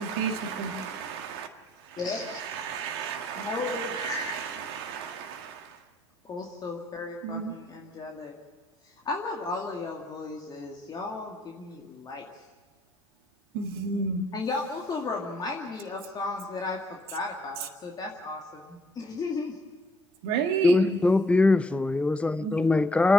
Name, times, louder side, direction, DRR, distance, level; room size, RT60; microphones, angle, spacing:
voice 1, 0.0-1.5 1.8-5.8 7.2-7.5 13.5-14.3 20.2-21.0 22.4-22.6, right 6 dB, 60° right, 1.8 m, -32 dB
voice 2, 2.0-2.4 3.4-4.4 6.3-8.3 8.8-12.2 14.3-19.5, left 3 dB, 25° left, 2.3 m, -34 dB
voice 3, 20.6-23.1, left 2 dB, 10° left, 0.6 m, -22 dB
28.0 x 10.0 x 9.8 m
hypercardioid pair, 90°, 15 cm